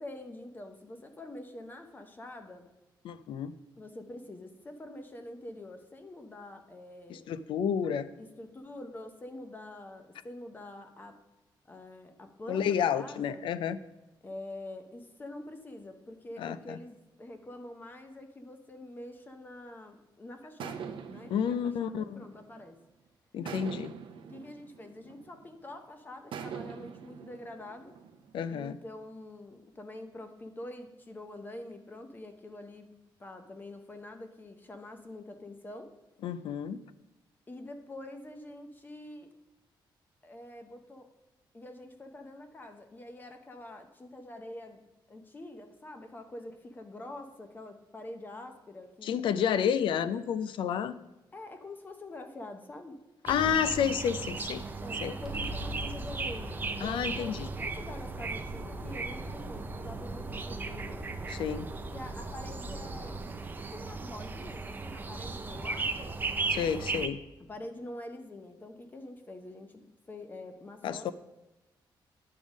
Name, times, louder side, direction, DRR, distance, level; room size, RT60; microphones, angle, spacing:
voice 1, 0.0-2.7 3.8-7.3 8.2-11.2 11.7-13.4 14.2-22.8 24.3-28.0 28.5-32.9 33.2-35.9 37.5-39.3 40.2-41.1 41.5-44.8 45.1-49.2 51.3-53.0 54.8-61.0 61.9-66.2 67.5-71.1, left 1 dB, 20° left, 6 dB, 0.7 m, -46 dB
voice 2, 3.0-3.5 7.1-8.1 12.5-13.8 16.4-16.8 21.3-22.3 23.3-23.9 28.3-28.8 36.2-36.8 49.0-50.9 53.3-54.6 55.0-55.1 56.8-57.5 61.3-61.7 66.5-67.2 70.8-71.1, left 8 dB, 80° left, 14 dB, 0.4 m, -30 dB
sound 1, 20.6-22.9 23.5-25.6 26.3-28.6, right 7 dB, 85° right, 0.7 m, -44 dB
sound 2, 53.3-67.1, right 4 dB, 20° right, 0.5 m, -37 dB
sound 3, 55.2-63.2, equal, ahead, 1.6 m, -43 dB
9.8 x 3.6 x 6.2 m, 1.0 s
wide cardioid pair, 155°, 9 cm